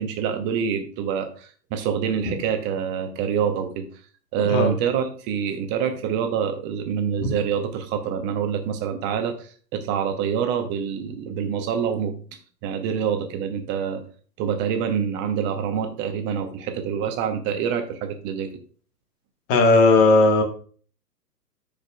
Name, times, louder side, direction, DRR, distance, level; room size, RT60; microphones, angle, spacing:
voice 1, 0.0-3.9 4.3-9.3 9.7-12.1 12.6-14.0 14.4-18.5, right 7 dB, 20° right, 7 dB, 0.9 m, -26 dB
voice 2, 4.4-4.7 7.2-7.3 19.5-20.4, left 3 dB, 25° left, 4 dB, 1.5 m, -16 dB
13.5 x 5.1 x 2.3 m, 0.43 s
figure-of-eight pair, 115°, 49 cm